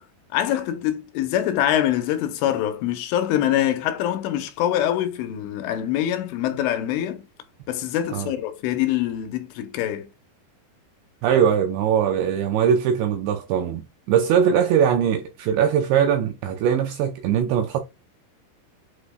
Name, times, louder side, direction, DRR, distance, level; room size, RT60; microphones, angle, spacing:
voice 1, 0.3-7.3 7.7-10.1, left 11 dB, 80° left, 3.1 m, -24 dB
voice 2, 11.2-17.8, right 8 dB, 90° right, 2.6 m, -21 dB
8.4 x 5.1 x 2.2 m
omnidirectional pair, 5.8 m